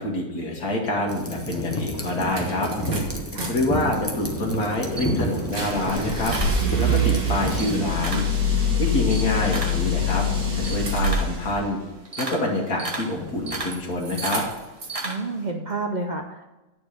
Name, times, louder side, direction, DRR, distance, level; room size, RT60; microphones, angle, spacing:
voice 1, 0.0-2.7 3.5-6.4 6.8-8.2 8.8-10.3 10.5-11.8 12.2-14.4, left 2 dB, 85° left, -1 dB, 1.9 m, -26 dB
sound 1, 1.1-7.8, equal, 10° left, 0.7 m, -30 dB
sound 2, 1.5-1.6 1.9-3.5 3.8-11.6 13.1-13.8 14.0-15.0, left 1 dB, 85° right, 2.1 m, -26 dB
Camera, 4.6-7.1 7.5-8.4 8.8-15.5, right 2 dB, 25° right, 1.1 m, -34 dB
voice 2, 8.9-9.3 15.0-16.4, right 3 dB, 65° right, 3 dB, 0.4 m, -30 dB
9.5 x 4.4 x 6.5 m, 1.1 s
omnidirectional pair, 1.5 m